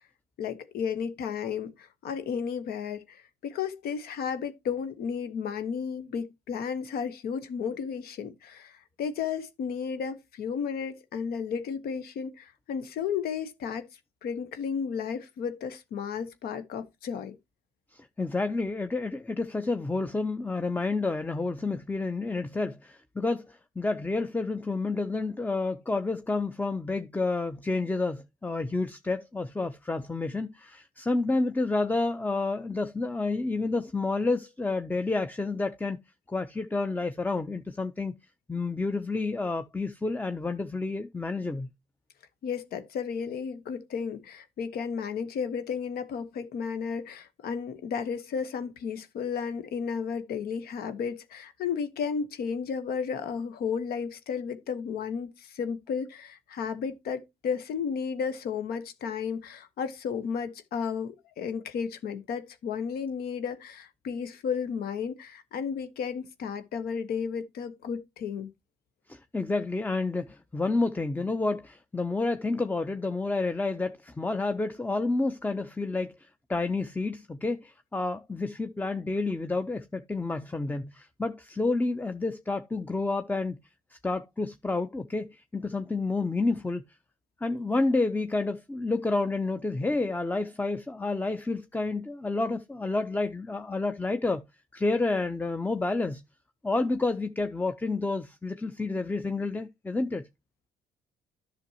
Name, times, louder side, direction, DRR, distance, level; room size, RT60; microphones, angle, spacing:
voice 1, 0.4-13.9 14.2-17.4 42.4-68.5, left 6 dB, 70° left, 1.1 m, -33 dB
voice 2, 17.9-36.0 36.3-38.1 38.5-41.7 69.1-83.6 84.0-86.8 87.4-94.4 94.7-96.2 96.6-100.2, left 3 dB, 10° left, 0.7 m, -29 dB
10.5 x 6.2 x 2.9 m
supercardioid pair, 60°, 16 cm